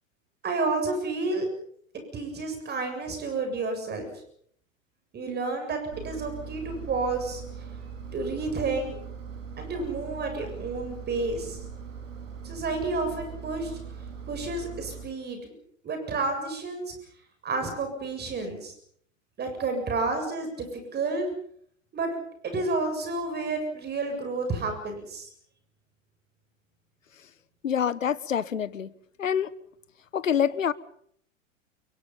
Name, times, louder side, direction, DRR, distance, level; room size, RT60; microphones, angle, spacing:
voice 1, 0.4-1.5 2.1-4.1 5.1-7.4 8.1-9.0 9.6-11.6 12.4-13.8 14.3-15.5 15.8-16.9 17.4-18.7 19.4-21.3 21.9-22.1 22.4-25.3, right 3 dB, 25° right, 7.5 m, -30 dB
Engine, 5.9-15.0, right 6 dB, 70° right, 5.0 m, -40 dB
voice 2, 27.6-28.9 29.2-29.5 30.1-30.7, left 8 dB, 75° left, 1.3 m, -26 dB
29.0 x 23.5 x 5.7 m
figure-of-eight pair, 90°, 39 cm